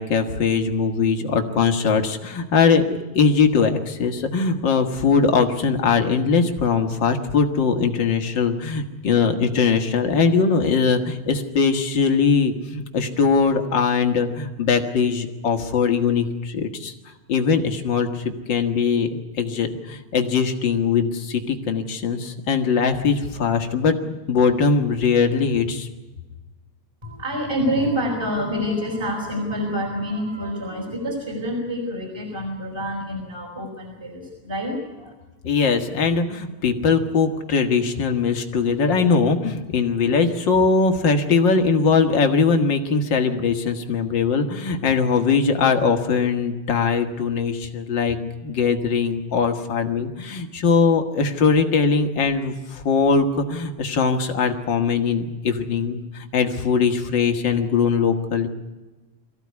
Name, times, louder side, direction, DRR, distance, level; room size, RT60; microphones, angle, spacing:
voice 1, 0.0-16.9 17.3-19.1 19.4-25.9 35.4-58.5, left 5 dB, 40° left, 5 dB, 2.1 m, -21 dB
voice 2, 27.0-35.1, equal, 10° right, -2 dB, 4.5 m, -27 dB
23.5 x 15.5 x 9.6 m, 1.2 s
omnidirectional pair, 3.6 m